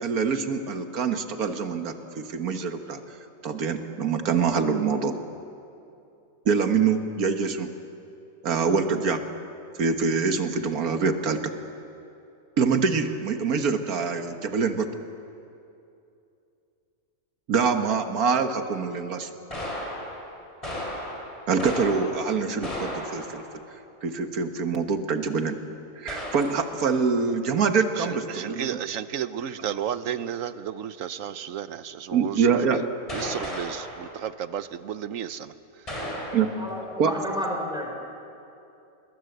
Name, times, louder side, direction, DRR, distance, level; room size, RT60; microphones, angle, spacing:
voice 1, 0.0-3.0 3.4-5.2 6.5-7.7 8.4-9.2 9.8-11.5 12.6-14.9 17.5-19.3 21.5-23.4 24.0-25.6 26.0-28.8 29.6-29.7 32.1-32.8 36.3-36.5 37.0-37.1, right 5 dB, 85° right, 7 dB, 1.9 m, -25 dB
sound 1, 19.5-23.6 25.3-25.4 26.1-26.7 33.1-34.1 35.9-36.7, equal, 20° left, 4.3 m, -35 dB
voice 2, 28.3-32.4 32.7-32.8 33.1-35.5, right 9 dB, 65° right, 13 dB, 1.2 m, -32 dB
voice 3, 36.5-37.9, equal, 5° right, 0 dB, 4.8 m, -31 dB
26.0 x 21.5 x 7.9 m, 2.7 s
omnidirectional pair, 1.5 m